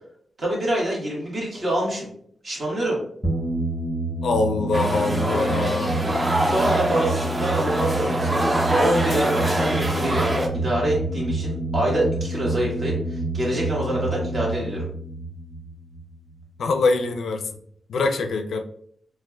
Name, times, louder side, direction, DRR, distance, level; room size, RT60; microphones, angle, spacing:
voice 1, 0.4-2.1 2.4-3.0 6.4-14.9, right 1 dB, 45° right, -3 dB, 1.4 m, -26 dB
sound 1, 3.2-16.4, right 2 dB, 5° right, 0.9 m, -28 dB
voice 2, 4.2-6.1 16.6-17.5 17.9-18.6, left 3 dB, 80° left, 5 dB, 0.4 m, -23 dB
sound 2, 4.7-10.5, right 1 dB, 25° right, 0.6 m, -24 dB
4.1 x 2.4 x 2.2 m, 0.64 s
cardioid pair, 75°, 0 cm